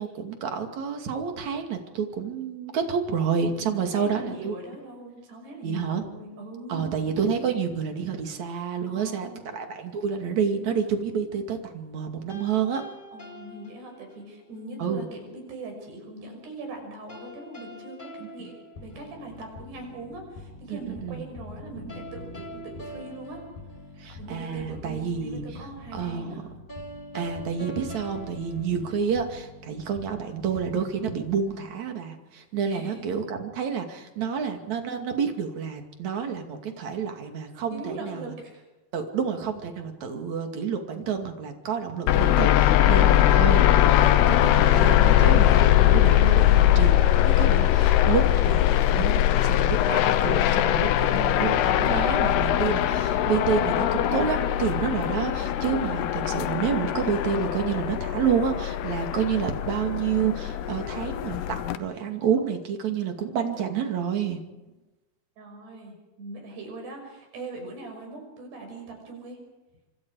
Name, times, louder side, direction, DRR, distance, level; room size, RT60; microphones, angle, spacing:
voice 1, 0.0-4.5 5.6-6.0 6.7-12.8 14.8-15.1 18.4-18.5 20.7-21.3 24.0-25.4 25.9-26.3 27.1-38.3 38.9-64.4, right 7 dB, 50° right, 5 dB, 3.5 m, -29 dB
voice 2, 3.5-6.9 8.8-9.5 13.1-23.4 24.1-26.4 32.6-33.0 37.7-38.6 65.4-69.4, right 2 dB, 80° right, 3 dB, 8.1 m, -41 dB
sound 1, 12.3-14.4 17.1-19.5 21.9-24.4 26.7-29.5, equal, 25° left, 1.1 m, -44 dB
sound 2, 18.8-31.7, left 2 dB, 65° left, 6.9 m, -45 dB
sound 3, 42.1-61.8, left 12 dB, 90° left, 3.1 m, -21 dB
26.0 x 25.5 x 4.9 m, 1.1 s
omnidirectional pair, 4.6 m